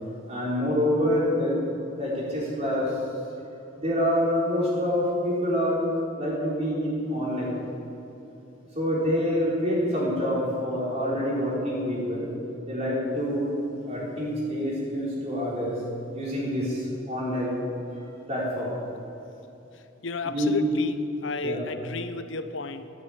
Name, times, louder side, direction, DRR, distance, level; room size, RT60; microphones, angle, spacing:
voice 1, 0.3-2.9 3.8-5.8 6.2-7.5 8.8-12.3 12.7-13.5 13.8-15.8 16.1-17.6 18.3-18.7 20.2-20.5 21.4-21.6, equal, 30° right, -6 dB, 4.3 m, -26 dB
voice 2, 20.0-22.9, left 3 dB, 65° left, 10 dB, 0.8 m, -33 dB
13.0 x 9.2 x 8.7 m, 2.9 s
head